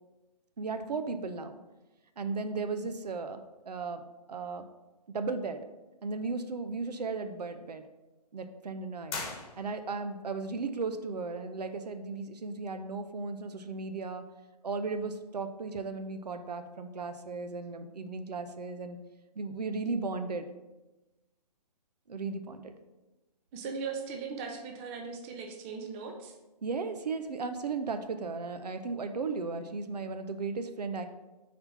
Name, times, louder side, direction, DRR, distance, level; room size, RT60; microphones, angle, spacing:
voice 1, 0.6-1.6 2.2-3.4 3.7-4.7 5.1-5.6 6.0-7.8 8.3-9.2 9.6-14.2 14.6-19.0 19.4-20.5 22.1-22.7 26.6-31.1, right 4 dB, 75° right, 8 dB, 0.6 m, -35 dB
sound 1, 9.1-10.1, left 4 dB, 35° left, 1.2 m, -39 dB
voice 2, 23.5-26.3, right 5 dB, 20° right, 3 dB, 0.5 m, -38 dB
4.3 x 4.2 x 5.5 m, 1.1 s
hypercardioid pair, 145°, 21 cm